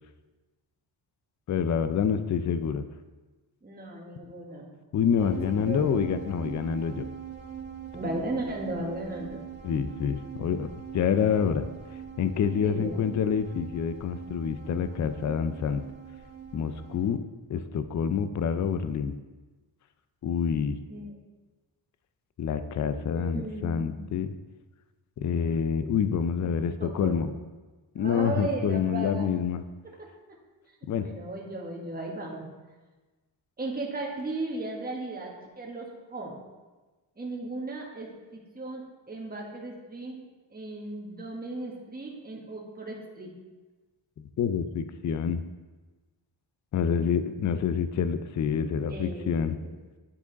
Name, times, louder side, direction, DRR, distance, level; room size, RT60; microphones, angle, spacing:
voice 1, 1.5-2.8 4.9-7.1 9.6-11.7 12.2-15.8 16.5-17.2 17.5-19.2 20.2-20.8 22.4-24.3 25.2-27.3 27.9-29.6 30.9-31.1 44.2-45.4 46.7-49.5, left 7 dB, 40° left, 11 dB, 0.5 m, -27 dB
voice 2, 3.6-4.7 5.2-6.0 7.9-9.4 12.6-13.0 20.9-21.2 23.1-24.1 26.3-26.5 26.8-27.3 28.0-29.3 31.0-32.4 33.6-36.4 37.2-40.2 40.5-43.3 48.9-49.7, right 2 dB, 20° right, -2 dB, 1.5 m, -36 dB
sound 1, 5.2-17.1, right 8 dB, 80° right, 1.3 m, -42 dB
9.7 x 4.9 x 4.0 m, 1.2 s
cardioid pair, 95°, 45 cm